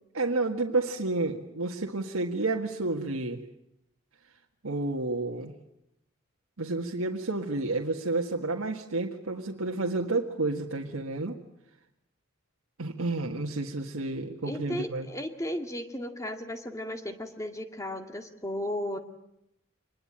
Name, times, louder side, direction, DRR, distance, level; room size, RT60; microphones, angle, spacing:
voice 1, 0.1-3.4 4.6-5.5 6.6-11.4 12.8-15.1, right 2 dB, 90° right, 1 dB, 1.8 m, -30 dB
voice 2, 14.4-19.0, left 1 dB, 15° left, 6 dB, 2.0 m, -35 dB
25.0 x 20.5 x 8.9 m, 0.82 s
head